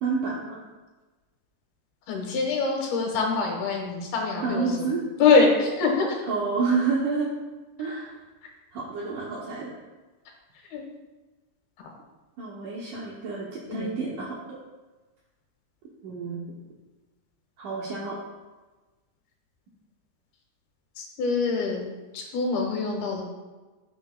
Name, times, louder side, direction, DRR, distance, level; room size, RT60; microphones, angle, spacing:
voice 1, 0.0-0.6 4.4-5.0 6.3-7.3 7.8-8.1 8.7-9.7 12.4-14.6 16.0-16.4 17.6-18.2, right 4 dB, 85° right, -4 dB, 1.8 m, -29 dB
voice 2, 2.1-4.9 5.2-6.2 8.4-8.5 10.7-10.8 13.7-13.9 21.0-21.8 22.1-23.2, left 4 dB, 70° left, 1 dB, 2.8 m, -24 dB
13.5 x 6.8 x 2.3 m, 1.2 s
omnidirectional pair, 5.2 m